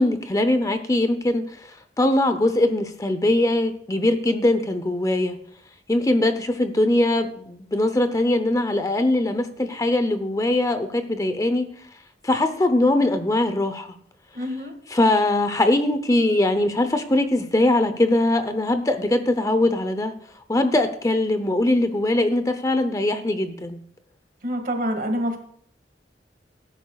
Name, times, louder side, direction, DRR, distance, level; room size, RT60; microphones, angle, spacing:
voice 1, 0.0-5.4 5.9-11.7 12.2-13.9 14.9-20.2 20.5-23.8, left 1 dB, 20° left, 8 dB, 0.7 m, -21 dB
voice 2, 14.3-14.7 24.4-25.4, equal, 50° right, 5 dB, 1.9 m, -26 dB
18.0 x 10.5 x 2.4 m, 0.62 s
head